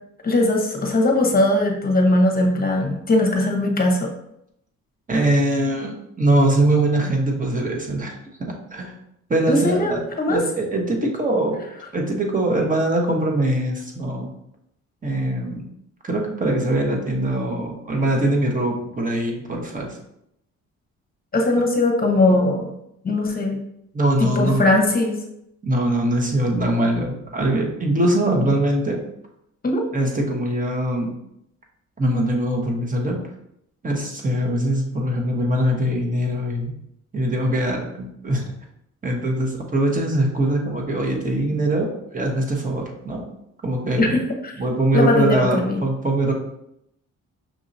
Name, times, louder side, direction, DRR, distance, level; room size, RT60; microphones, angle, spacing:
voice 1, 0.2-4.1 9.5-10.4 21.3-22.7 23.0-23.6 24.2-25.2 29.6-29.8 44.0-44.1 44.4-44.5 44.9-45.8, left 2 dB, 30° left, 2 dB, 1.0 m, -19 dB
voice 2, 5.1-8.1 8.7-8.9 9.3-10.0 10.3-11.6 11.9-14.3 15.0-15.6 16.0-20.0 23.9-24.8 25.6-29.0 29.9-31.1 32.0-33.2 33.8-36.7 37.1-38.5 39.0-43.3 43.6-44.2 44.6-46.3, right 1 dB, 25° right, 0 dB, 1.1 m, -22 dB
6.1 x 2.8 x 2.7 m, 0.78 s
cardioid pair, 90°, 30 cm